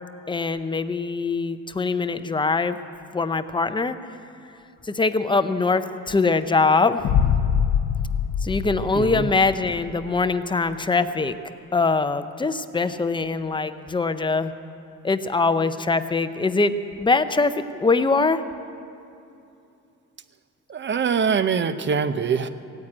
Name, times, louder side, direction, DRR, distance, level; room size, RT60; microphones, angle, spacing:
voice 1, 0.3-2.8 3.1-4.0 4.8-7.1 8.4-11.3 11.7-14.5 15.0-18.4, left 3 dB, 15° left, 11 dB, 0.6 m, -22 dB
Boom, 7.0-10.0, left 7 dB, 90° left, 0.7 m, -24 dB
voice 2, 8.9-9.3 20.7-22.5, right 6 dB, 35° right, 12 dB, 0.7 m, -23 dB
16.5 x 9.3 x 8.7 m, 2.7 s
cardioid pair, 115°, 32 cm